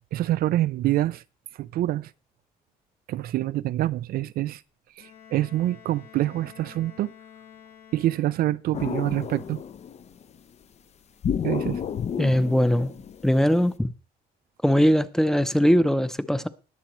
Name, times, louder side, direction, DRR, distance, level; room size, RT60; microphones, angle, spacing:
voice 1, 0.1-1.2 1.6-2.1 3.1-4.6 5.0-7.1 7.9-9.6 11.4-11.8, right 14 dB, 60° right, 0.4 m, -26 dB
Bowed string instrument, 5.0-8.8, left 9 dB, 70° left, 2.1 m, -50 dB
sound 1, 8.7-10.2 11.2-13.7, left 8 dB, 40° left, 0.7 m, -31 dB
voice 2, 12.2-12.9 13.2-13.9 14.6-16.5, equal, 5° left, 0.7 m, -21 dB
20.5 x 7.1 x 3.1 m
cardioid pair, 110°, 17 cm